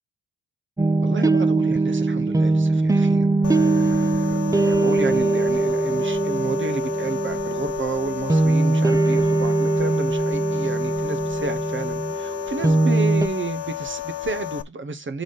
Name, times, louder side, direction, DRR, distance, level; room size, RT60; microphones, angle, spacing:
sound 1, 0.8-13.3, right 3 dB, 10° right, 0.5 m, -21 dB
voice 1, 1.0-15.2, right 4 dB, 35° right, 0.9 m, -31 dB
sound 2, 3.4-14.6, left 14 dB, 50° left, 0.5 m, -32 dB
4.9 x 4.1 x 5.2 m
supercardioid pair, 60°, 33 cm